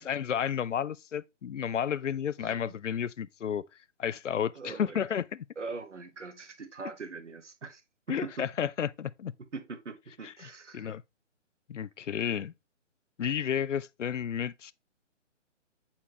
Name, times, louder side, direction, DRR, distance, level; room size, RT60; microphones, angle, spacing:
voice 1, 0.0-3.7 4.0-5.5 8.1-9.3 10.2-10.5 10.7-11.0 11.7-12.5 13.2-14.7, left 8 dB, 75° left, 0.5 m, -32 dB
voice 2, 2.4-2.7 4.5-5.0 5.6-7.8 8.1-8.5 9.5-10.9, right 4 dB, 70° right, 1.2 m, -42 dB
7.5 x 4.4 x 2.9 m
figure-of-eight pair, 140°, 37 cm